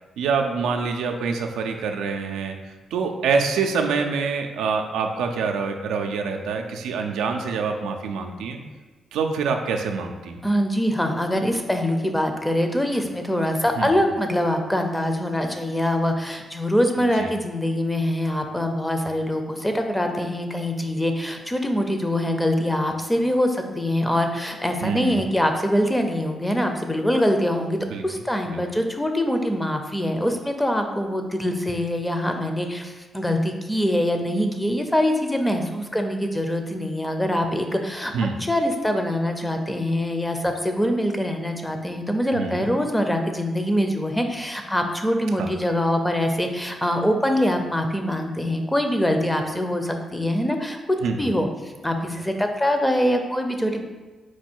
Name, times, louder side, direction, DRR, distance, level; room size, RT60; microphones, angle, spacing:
voice 1, 0.2-8.6 9.1-10.4 13.8-13.9 17.0-17.3 24.8-25.2 27.9-28.0 28.5-28.6 38.1-38.4 42.3-42.7 45.4-45.5 51.0-51.3, right 5 dB, 90° right, 4 dB, 0.4 m, -26 dB
voice 2, 10.4-27.8 28.0-38.1 38.4-50.8 51.2-53.8, left 1 dB, 10° left, 5 dB, 0.6 m, -24 dB
4.5 x 2.3 x 4.4 m, 1.3 s
supercardioid pair, 60°, 0 cm